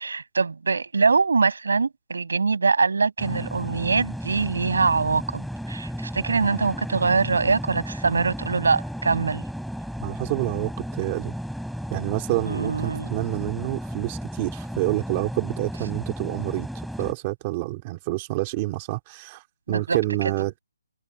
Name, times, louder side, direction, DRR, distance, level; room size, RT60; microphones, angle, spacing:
voice 1, 0.0-5.4 5.7-9.4 12.4-13.1 19.7-20.0, right 4 dB, 75° right, 7.8 m, -23 dB
sound 1, 3.2-17.1, equal, ahead, 4.0 m, -34 dB
voice 2, 10.0-11.3 11.9-16.7 17.0-20.6, right 20 dB, 20° right, 2.6 m, -28 dB
hypercardioid pair, 170°, 0 cm